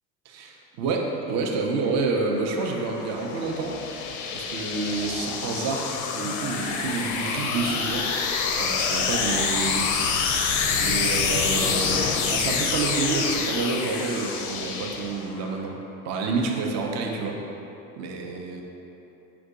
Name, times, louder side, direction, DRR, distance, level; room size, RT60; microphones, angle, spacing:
voice 1, 0.3-3.7 4.3-10.4 10.8-15.8 16.0-17.4 18.0-18.6, right 4 dB, 40° right, 1 dB, 0.6 m, -29 dB
sound 1, 2.0-15.5, left 5 dB, 45° left, 0.5 m, -27 dB
4.5 x 2.6 x 3.7 m, 3.0 s
hypercardioid pair, 75°, 43 cm